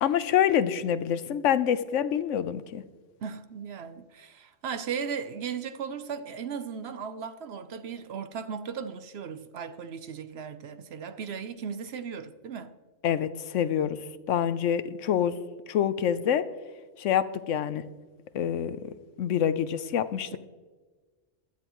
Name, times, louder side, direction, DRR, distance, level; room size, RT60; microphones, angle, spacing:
voice 1, 0.0-2.8 13.0-14.0 14.3-15.4 15.7-16.5 17.0-17.8 18.3-18.8 19.2-20.3, left 9 dB, 80° left, 1.0 m, -26 dB
voice 2, 3.2-12.7 20.3-20.4, right 6 dB, 60° right, 0.9 m, -36 dB
16.0 x 12.0 x 3.0 m
omnidirectional pair, 1.3 m